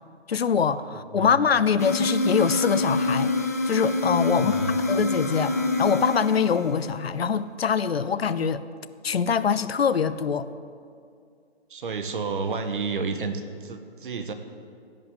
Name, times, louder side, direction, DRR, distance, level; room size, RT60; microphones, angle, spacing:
voice 1, 0.3-3.3 3.7-4.6 4.8-8.6 9.0-10.5, left 6 dB, 65° left, 15 dB, 0.7 m, -24 dB
sound 1, 1.8-7.1, left 2 dB, 15° left, 0.4 m, -26 dB
voice 2, 4.3-4.8 11.7-14.3, right 4 dB, 50° right, 8 dB, 1.3 m, -31 dB
16.0 x 5.5 x 8.6 m, 2.3 s
figure-of-eight pair, 145°, 33 cm